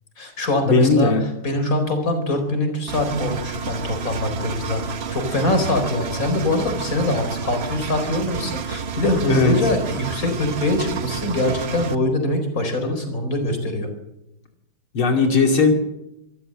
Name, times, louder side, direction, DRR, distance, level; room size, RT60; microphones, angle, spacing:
voice 1, 0.2-1.1 1.4-13.9, left 1 dB, 40° left, 6 dB, 4.8 m, -23 dB
voice 2, 0.7-1.2 9.3-9.6 14.9-15.7, left 4 dB, 85° left, 3 dB, 3.5 m, -17 dB
Engine, 2.9-12.0, right 6 dB, 45° right, 0.8 m, -30 dB
25.5 x 14.0 x 7.8 m, 0.88 s
omnidirectional pair, 2.2 m